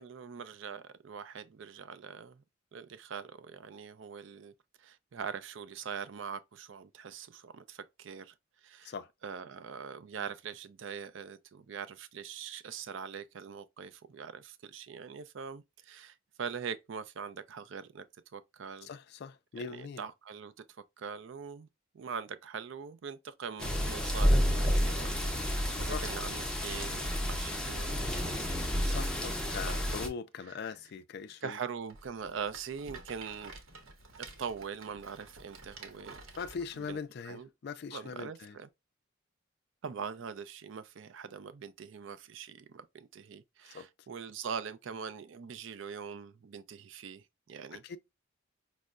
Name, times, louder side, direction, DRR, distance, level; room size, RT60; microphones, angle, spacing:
voice 1, 0.0-2.4 2.7-4.5 4.8-8.3 8.6-8.9 9.2-18.0 18.3-18.9 19.7-20.5 21.0-21.7 21.9-29.0 29.9-30.0 30.5-30.6 31.4-33.5 34.4-36.2 36.8-37.0 37.2-37.5 37.9-38.7 39.8-47.8, right 6 dB, 65° right, 0.4 m, -42 dB
voice 2, 18.8-20.1 25.8-26.1 28.8-31.6 36.4-38.6 43.7-43.9 47.7-48.0, left 5 dB, 50° left, 0.3 m, -41 dB
sound 1, 23.6-30.1, equal, 5° left, 0.5 m, -30 dB
Rattle, 31.8-36.9, right 3 dB, 80° right, 0.8 m, -51 dB
5.2 x 2.0 x 2.3 m
head